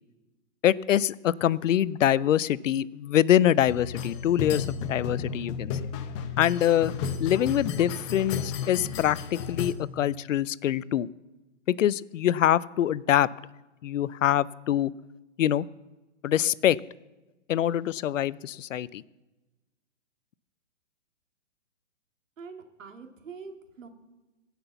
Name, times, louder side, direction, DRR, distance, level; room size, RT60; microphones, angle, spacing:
voice 1, 0.6-5.7 6.4-6.9 7.2-11.1 11.7-13.3 13.8-14.9 15.4-15.7 16.2-16.8 17.5-19.0, left 11 dB, 75° left, 21 dB, 0.5 m, -24 dB
sound 1, 3.7-9.7, left 6 dB, 25° left, 0.7 m, -33 dB
voice 2, 22.4-23.9, right 5 dB, 80° right, 5 dB, 2.1 m, -44 dB
16.0 x 5.9 x 6.9 m, 1.1 s
hypercardioid pair, 140°, 38 cm